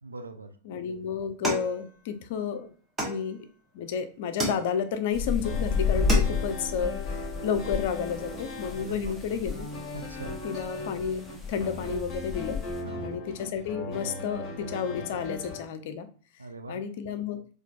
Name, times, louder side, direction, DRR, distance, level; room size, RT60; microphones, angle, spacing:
voice 1, 0.0-0.6 8.7-9.1 9.9-10.4 12.8-13.2 16.4-16.8, right 3 dB, 80° right, 7 dB, 0.4 m, -42 dB
voice 2, 0.6-2.7 3.0-3.5 3.7-9.7 10.4-12.6 13.0-16.1 16.7-17.4, left 7 dB, 50° left, 10 dB, 0.4 m, -31 dB
sound 1, 1.4-2.4 3.0-3.7 4.4-5.1 5.6-5.7 5.9-6.6, right 2 dB, 15° right, 0.9 m, -33 dB
sound 2, 5.1-12.8, left 5 dB, 10° left, 0.6 m, -32 dB
sound 3, 5.4-15.6, left 2 dB, 25° left, 1.1 m, -39 dB
4.3 x 2.4 x 2.4 m, 0.42 s
figure-of-eight pair, 90°, 0 cm